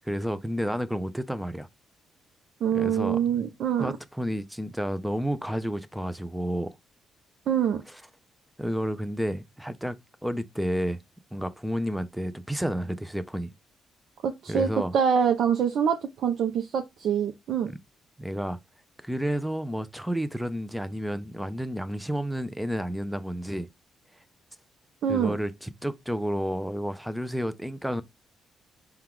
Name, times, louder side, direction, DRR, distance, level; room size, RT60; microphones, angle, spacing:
voice 1, 0.0-1.7 2.7-3.5 3.8-6.8 8.6-10.0 10.2-11.0 11.3-13.5 14.5-14.9 17.7-17.8 18.2-18.6 19.0-23.7 25.1-28.0, equal, 5° right, 0.5 m, -31 dB
voice 2, 2.6-3.9 7.5-7.8 14.2-17.7 25.0-25.4, right 8 dB, 70° right, 0.6 m, -25 dB
4.5 x 2.3 x 3.5 m
cardioid pair, 90°, 0 cm